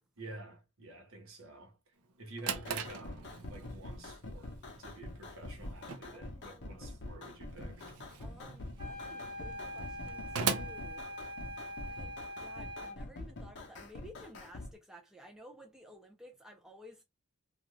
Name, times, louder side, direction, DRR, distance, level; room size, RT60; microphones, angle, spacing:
voice 1, 0.2-1.8 2.2-7.9, right 2 dB, 65° right, 1.0 m, -50 dB
Drawer open or close, 2.0-11.8, right 6 dB, 90° right, 0.5 m, -42 dB
sound 1, 2.5-14.7, left 2 dB, 50° left, 0.7 m, -46 dB
voice 2, 6.1-6.9 8.2-11.0 11.8-17.0, equal, ahead, 0.5 m, -55 dB
sound 2, 8.8-13.0, equal, 20° right, 0.9 m, -43 dB
2.4 x 2.4 x 3.0 m
head